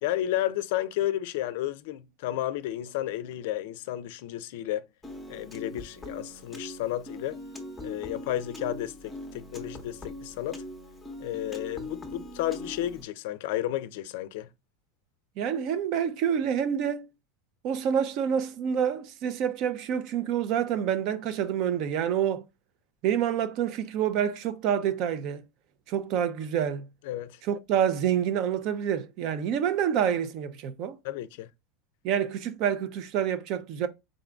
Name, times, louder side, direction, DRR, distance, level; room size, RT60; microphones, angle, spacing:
voice 1, 0.0-4.9 5.3-7.4 7.8-10.6 11.2-14.5 27.0-27.4 31.0-31.5, left 13 dB, 70° left, 0.4 m, -32 dB
Piano, 5.0-13.0, left 1 dB, 5° left, 0.8 m, -41 dB
voice 2, 15.4-17.1 17.6-22.4 23.0-25.4 25.9-26.9 27.5-31.0 32.0-33.9, right 9 dB, 45° right, 0.5 m, -27 dB
3.7 x 3.7 x 2.3 m
supercardioid pair, 150°, 0 cm